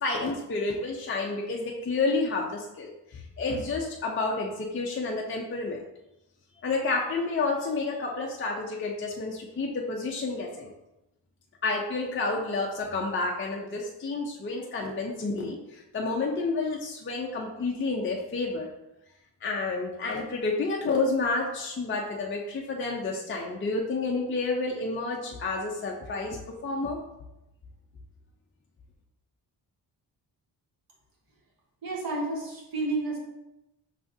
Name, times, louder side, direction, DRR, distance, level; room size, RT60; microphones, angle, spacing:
voice 1, 0.0-5.8 6.6-10.7 11.6-18.7 19.4-27.0, left 3 dB, 30° left, -1 dB, 0.5 m, -30 dB
voice 2, 31.8-33.2, right 2 dB, 55° right, -2 dB, 1.3 m, -30 dB
5.7 x 3.5 x 2.6 m, 0.92 s
wide cardioid pair, 135°, 42 cm